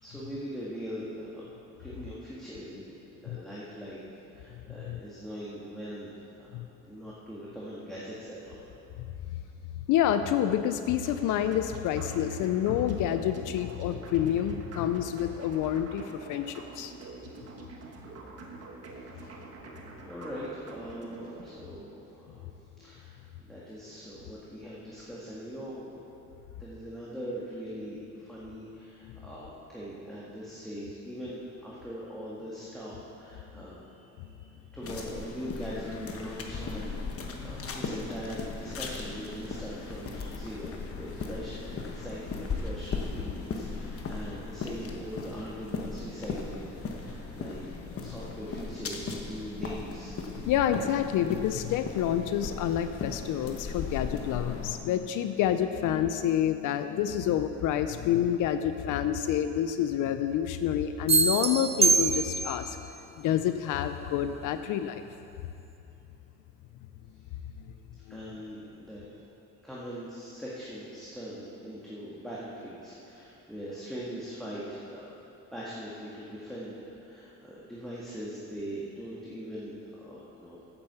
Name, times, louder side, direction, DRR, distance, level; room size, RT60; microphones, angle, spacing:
voice 1, 0.0-2.9 3.2-6.1 6.5-6.6 6.9-8.7 19.2-19.4 20.0-22.4 22.8-26.0 26.6-32.9 33.2-50.2 68.1-69.1 69.6-75.1 75.5-80.6, equal, ahead, -8 dB, 1.9 m, -41 dB
voice 2, 9.9-16.9 34.2-34.3 50.5-62.8 63.2-65.0 68.1-68.2, left 10 dB, 85° left, 9 dB, 0.5 m, -28 dB
sound 1, 11.0-21.5, right 3 dB, 55° right, 1.5 m, -46 dB
sound 2, 34.8-54.8, left 4 dB, 50° left, 1.2 m, -37 dB
sound 3, 61.1-62.7, right 4 dB, 20° right, 0.4 m, -24 dB
8.7 x 8.1 x 6.9 m, 2.9 s
cardioid pair, 90°, 30 cm